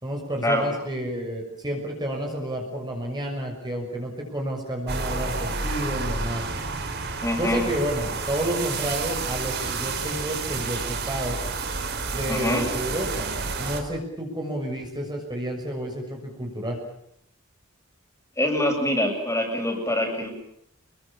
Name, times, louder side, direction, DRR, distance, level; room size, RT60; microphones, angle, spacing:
voice 1, 0.0-6.4 7.4-10.8 11.1-11.4 12.1-13.3 13.6-16.8, equal, 20° right, 1 dB, 6.4 m, -30 dB
sound 1, 4.9-13.8, right 4 dB, 50° right, 4.4 m, -30 dB
voice 2, 7.2-7.6 12.3-12.6 18.4-20.3, left 1 dB, 15° left, 2 dB, 7.6 m, -24 dB
29.0 x 23.0 x 7.4 m, 0.74 s
head